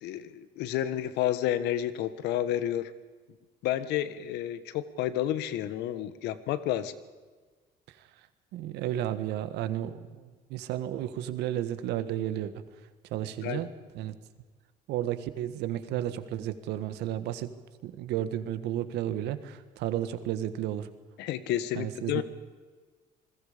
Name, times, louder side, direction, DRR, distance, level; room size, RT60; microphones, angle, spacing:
voice 1, 0.0-2.9 3.6-6.9 13.4-13.7 21.2-22.2, left 12 dB, 90° left, 14 dB, 1.4 m, -30 dB
voice 2, 8.5-12.5 13.1-13.7 13.9-14.1 14.9-17.5 17.8-20.9 21.7-22.2, right 12 dB, 85° right, 12 dB, 1.6 m, -32 dB
27.0 x 21.0 x 5.2 m, 1.4 s
cardioid pair, 110°, 17 cm